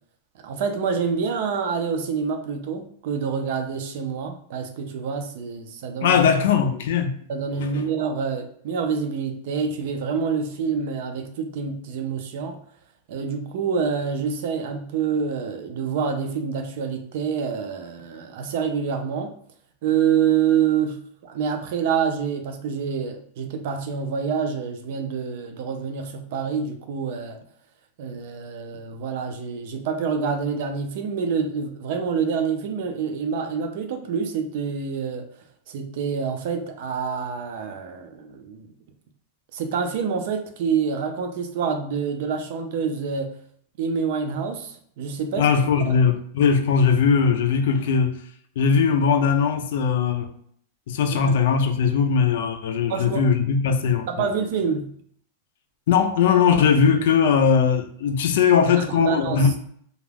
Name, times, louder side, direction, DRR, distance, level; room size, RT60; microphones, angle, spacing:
voice 1, 0.4-6.2 7.3-12.6 13.1-19.3 19.8-27.4 28.0-35.3 35.7-38.7 39.5-43.4 43.8-45.5 45.8-45.9 51.1-51.3 52.9-53.2 54.1-54.9 58.6-59.5, right 6 dB, 50° right, 0.4 m, -27 dB
voice 2, 6.0-7.1 7.6-7.8 45.4-48.2 48.6-50.3 50.9-54.3 55.9-59.5, left 6 dB, 60° left, 0.4 m, -20 dB
2.3 x 2.2 x 3.3 m
supercardioid pair, 175°, 0 cm